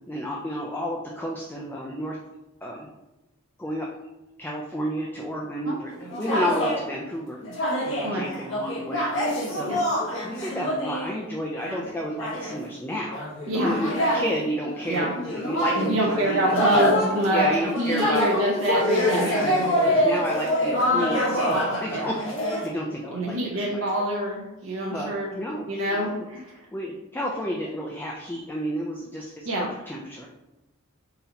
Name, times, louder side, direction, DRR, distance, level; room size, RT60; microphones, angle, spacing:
voice 1, 0.1-2.2 2.6-2.9 3.6-3.9 4.4-5.9 6.2-7.4 7.8-9.1 9.5-9.8 10.2-13.2 13.5-16.9 17.3-18.3 19.1-19.6 19.8-22.1 22.6-23.8 24.9-25.7 25.9-26.3 26.7-30.3, equal, 10° left, -2 dB, 0.3 m, -31 dB
sound 1, 5.9-6.8 7.4-11.1 11.6-11.9 12.2-12.6 13.1-22.7, equal, 65° left, 1.1 m, -26 dB
voice 2, 13.5-13.8 14.9-15.1 15.8-20.1 21.9-22.1 23.1-25.3 25.7-26.6 29.4-29.7, right 1 dB, 75° right, -3 dB, 0.7 m, -26 dB
3.9 x 2.8 x 4.0 m, 0.99 s
head